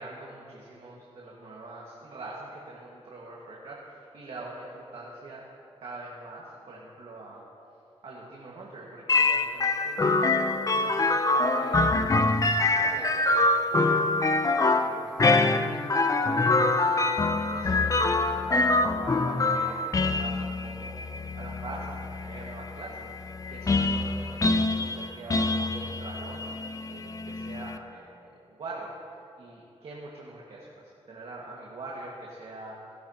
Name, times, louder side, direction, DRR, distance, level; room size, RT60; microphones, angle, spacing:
voice 1, 0.0-5.4 5.8-7.4 8.0-10.0 10.6-11.8 12.3-15.3 15.7-32.8, right 2 dB, 65° right, -4 dB, 1.8 m, -44 dB
sound 1, 9.1-27.8, left 2 dB, 30° left, 0.6 m, -25 dB
18.0 x 11.0 x 3.0 m, 2.6 s
cardioid pair, 85°, 11 cm